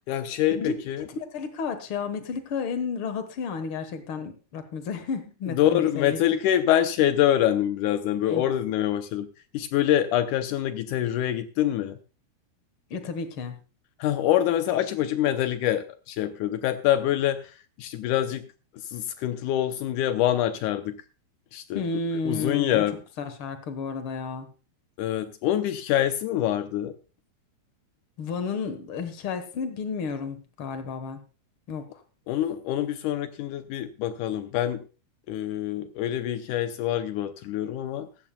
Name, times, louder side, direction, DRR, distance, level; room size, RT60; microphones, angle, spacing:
voice 1, 0.1-1.1 5.5-12.0 14.0-17.5 17.8-18.5 18.8-21.0 21.5-21.8 22.2-23.0 25.0-26.9 32.3-34.8 35.3-38.1, left 12 dB, 85° left, 10 dB, 1.8 m, -25 dB
voice 2, 1.3-6.2 8.2-8.4 12.9-13.6 21.7-22.8 23.2-24.5 28.2-31.2 31.7-32.0, left 5 dB, 70° left, 9 dB, 1.3 m, -32 dB
17.0 x 14.0 x 2.3 m, 0.34 s
omnidirectional pair, 4.5 m